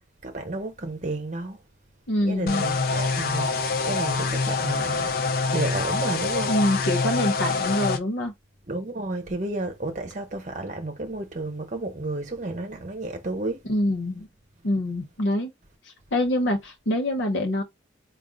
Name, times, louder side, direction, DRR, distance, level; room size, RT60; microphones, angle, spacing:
voice 1, 0.2-1.6 2.2-5.1 5.5-6.5 8.7-13.6, right 2 dB, 40° right, 0.8 m, -32 dB
voice 2, 2.1-2.6 6.5-8.3 13.7-14.3 14.6-15.5 15.8-17.6, left 1 dB, 80° left, 0.8 m, -25 dB
sound 1, 2.5-8.0, left 4 dB, 50° left, 0.4 m, -25 dB
3.7 x 2.4 x 3.8 m
head